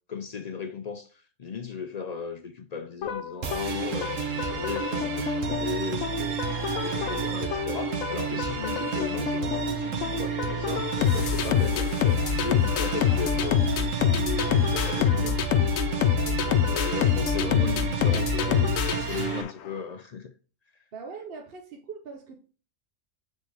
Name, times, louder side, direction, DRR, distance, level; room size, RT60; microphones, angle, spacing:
voice 1, 0.1-15.4 16.6-20.3, left 6 dB, 70° left, 0.3 m, -36 dB
sound 1, 3.0-19.7, left 9 dB, 85° left, 1.0 m, -27 dB
sound 2, 3.4-19.4, right 6 dB, 75° right, 1.4 m, -31 dB
voice 2, 6.6-7.6 11.5-11.8 12.2-12.4 13.1-13.3 16.2-17.0 20.9-22.4, right 4 dB, 55° right, 1.0 m, -43 dB
7.9 x 4.1 x 3.4 m
omnidirectional pair, 1.3 m